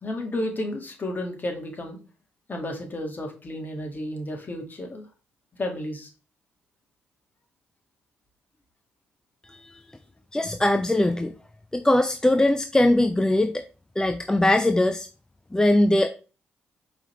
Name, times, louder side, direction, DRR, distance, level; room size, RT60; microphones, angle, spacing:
voice 1, 0.0-2.0 2.5-5.1 5.6-6.1, left 1 dB, 40° left, 3 dB, 1.6 m, -32 dB
voice 2, 10.3-11.3 11.7-13.6 14.0-15.1 15.5-16.1, left 1 dB, 15° left, 8 dB, 0.4 m, -21 dB
4.7 x 3.4 x 3.0 m, 0.35 s
hypercardioid pair, 45°, 5 cm